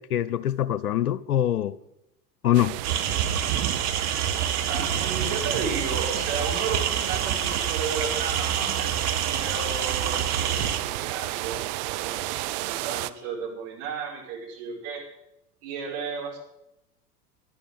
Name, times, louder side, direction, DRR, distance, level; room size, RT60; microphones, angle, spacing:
voice 1, 0.0-1.7 2.4-2.8, left 12 dB, 70° left, 0.9 m, -24 dB
sound 1, 2.5-13.1, right 18 dB, 30° right, 0.4 m, -32 dB
sound 2, 2.8-10.8, right 8 dB, 70° right, 1.5 m, -28 dB
voice 2, 4.6-11.6 11.9-15.0 15.6-16.4, right 5 dB, 50° right, 5.2 m, -34 dB
11.5 x 11.0 x 7.8 m
figure-of-eight pair, 85°, 47 cm